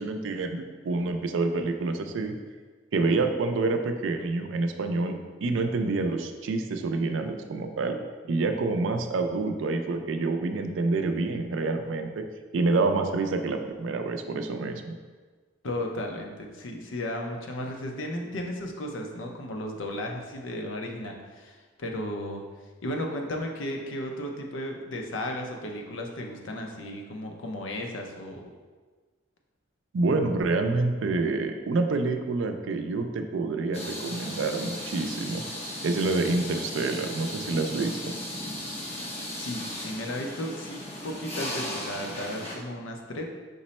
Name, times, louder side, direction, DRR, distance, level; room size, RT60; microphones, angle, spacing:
voice 1, 0.0-2.3 2.9-8.0 8.3-12.2 12.5-15.0 29.9-35.4 35.8-38.1, right 3 dB, 75° right, 6 dB, 0.4 m, -27 dB
voice 2, 15.6-22.4 22.8-28.5 39.3-43.2, left 1 dB, 85° left, 2 dB, 0.6 m, -34 dB
sound 1, 33.7-42.6, left 1 dB, 35° left, 0.7 m, -36 dB
5.2 x 2.1 x 4.1 m, 1.4 s
head